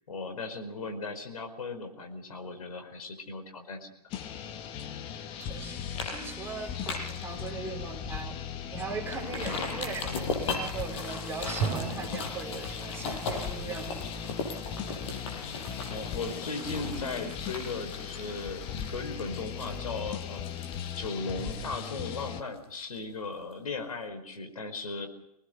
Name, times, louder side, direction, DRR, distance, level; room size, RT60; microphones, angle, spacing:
voice 1, 0.1-4.0 15.8-20.4 21.0-25.1, left 3 dB, 65° left, 7 dB, 4.9 m, -37 dB
sound 1, 4.1-22.4, left 8 dB, 25° left, 1.8 m, -38 dB
sound 2, 5.4-5.6 6.0-6.2 6.5-7.2 7.7-7.8 8.2-8.3 9.1-22.6 23.0-23.1, left 3 dB, 45° left, 7.2 m, -38 dB
voice 2, 5.4-5.8 6.1-8.4 8.7-14.0, right 5 dB, 10° right, 2 dB, 5.0 m, -39 dB
sound 3, 5.6-6.9 11.6-13.5, right 6 dB, 35° right, 4.7 m, -37 dB
26.0 x 19.5 x 6.6 m, 0.84 s
figure-of-eight pair, 125°, 20 cm